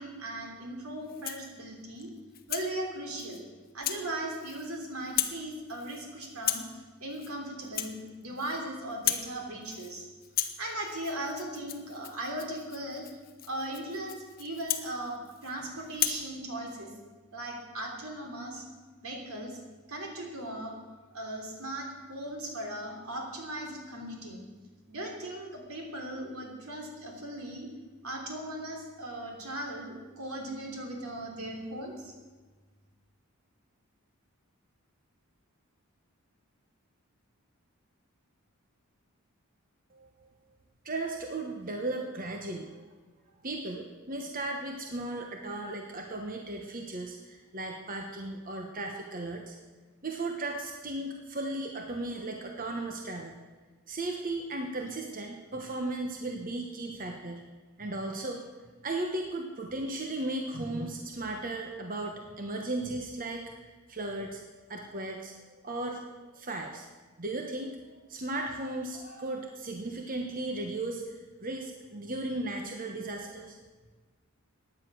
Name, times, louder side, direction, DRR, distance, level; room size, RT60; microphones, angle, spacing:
voice 1, 0.0-2.1 2.5-3.4 3.7-6.6 7.0-10.1 10.6-13.1 13.5-16.9 17.3-18.6 19.0-19.6 19.9-20.7 21.1-24.4 24.9-27.7 28.0-32.1, right 1 dB, 75° right, 1 dB, 3.3 m, -38 dB
Rattle (instrument), 1.0-1.5 2.0-2.7 3.2-3.4 3.8-4.0 4.3-4.8 5.0-5.4 5.7-6.0 6.4-6.7 7.1-7.3 7.6-8.6 8.9-9.3 9.6-10.0 10.2-15.5 15.9-16.2, left 11 dB, 40° left, 0.9 m, -35 dB
voice 2, 40.8-42.8 43.4-49.6 50.0-53.3 53.9-57.4 57.8-58.4 58.8-63.4 63.9-64.4 64.7-65.3 65.6-66.1 66.3-66.9 67.2-73.6, right 2 dB, 40° right, 2 dB, 1.1 m, -36 dB
15.5 x 10.0 x 6.2 m, 1.3 s
head